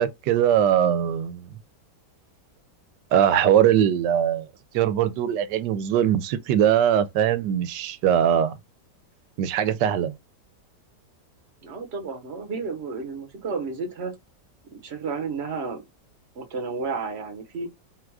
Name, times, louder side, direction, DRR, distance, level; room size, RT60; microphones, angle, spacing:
voice 1, 0.0-1.5 3.1-4.5 4.7-8.5 9.4-10.1, right 10 dB, 80° right, 1.2 m, -21 dB
voice 2, 11.6-14.1 14.7-15.8 16.4-17.7, right 4 dB, 45° right, 1.1 m, -32 dB
3.8 x 2.4 x 4.6 m
omnidirectional pair, 1.8 m